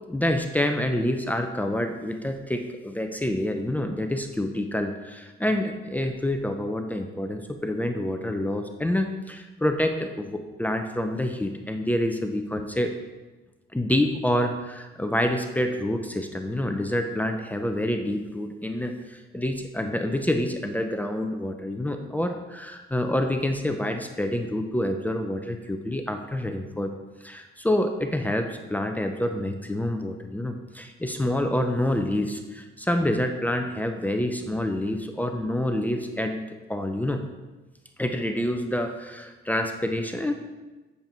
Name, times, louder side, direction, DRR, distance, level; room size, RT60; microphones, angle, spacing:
voice 1, 0.1-12.9 13.7-26.9 27.2-37.2 38.0-40.3, left 1 dB, 10° left, 5 dB, 0.8 m, -27 dB
8.4 x 7.1 x 4.5 m, 1.1 s
cardioid pair, 90°, 20 cm